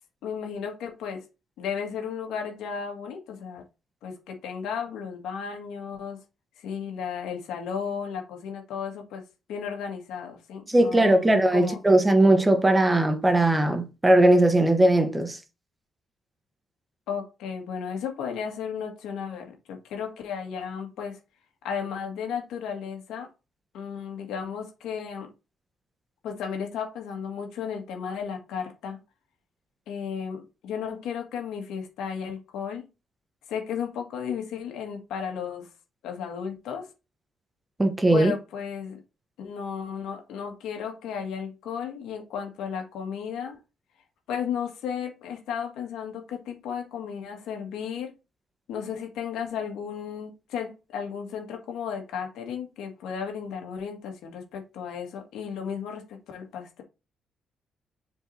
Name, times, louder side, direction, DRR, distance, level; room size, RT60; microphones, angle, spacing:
voice 1, 0.2-1.3 1.6-3.6 4.0-6.2 6.6-9.2 9.5-11.8 17.1-21.2 21.6-23.3 23.7-25.3 26.2-29.0 29.9-32.9 33.5-35.7 36.0-36.9 38.1-39.0 39.4-43.6 44.3-48.1 48.7-56.8, left 7 dB, 85° left, 1.8 m, -34 dB
voice 2, 10.7-15.4 37.8-38.3, right 1 dB, 15° right, 1.1 m, -19 dB
7.5 x 4.5 x 2.8 m
cardioid pair, 90°, 0 cm